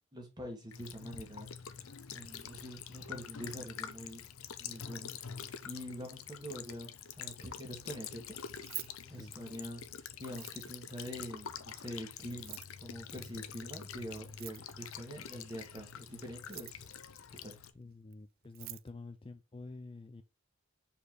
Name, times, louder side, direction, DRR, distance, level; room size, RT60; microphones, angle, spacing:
voice 1, 0.1-1.5 2.1-4.3 4.6-5.1 5.6-8.3 9.1-9.8 10.2-17.0 17.4-17.6, equal, 20° right, 2.1 m, -45 dB
Child speech kid speaking / Bird vocalization bird call bird song / Stream, 0.7-17.7, left 7 dB, 85° left, 0.7 m, -46 dB
Keys jangling, 8.5-9.8 10.3-10.9 12.3-12.8 14.3-14.9 16.3-17.0 18.1-18.2 18.4-18.9, right 17 dB, 45° right, 0.3 m, -46 dB
voice 2, 9.0-9.4 17.7-20.2, left 3 dB, 25° left, 0.4 m, -49 dB
5.1 x 4.3 x 4.8 m
head